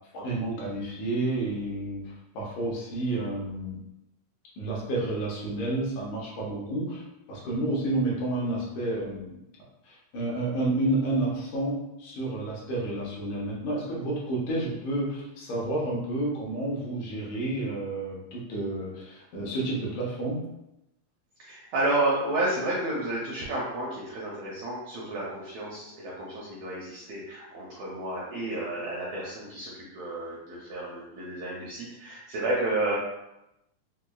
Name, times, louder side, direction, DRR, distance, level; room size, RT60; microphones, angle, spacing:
voice 1, 0.1-3.8 4.6-9.4 9.8-20.4, right 2 dB, 80° left, -5 dB, 2.3 m, -30 dB
voice 2, 21.4-33.0, right 2 dB, 85° right, -5 dB, 1.4 m, -31 dB
5.7 x 2.1 x 2.3 m, 0.90 s
omnidirectional pair, 3.7 m